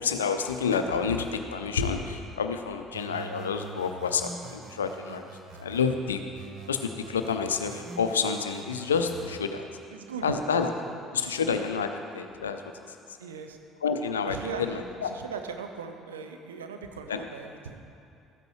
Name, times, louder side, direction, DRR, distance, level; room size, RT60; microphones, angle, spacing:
voice 1, 0.0-5.3 5.6-6.2 6.7-9.7 10.2-10.7 11.1-13.0 13.8-15.1 17.1-17.2, left 6 dB, 90° left, 7 dB, 0.5 m, -29 dB
sound 1, 2.9-5.9 6.4-9.4, right 4 dB, 65° right, 1.0 m, -44 dB
voice 2, 9.9-10.6 10.9-11.3 13.2-13.6 14.3-17.8, right 5 dB, 85° right, 6 dB, 0.5 m, -39 dB
13.5 x 9.1 x 3.1 m, 2.6 s
hypercardioid pair, 60°, 0 cm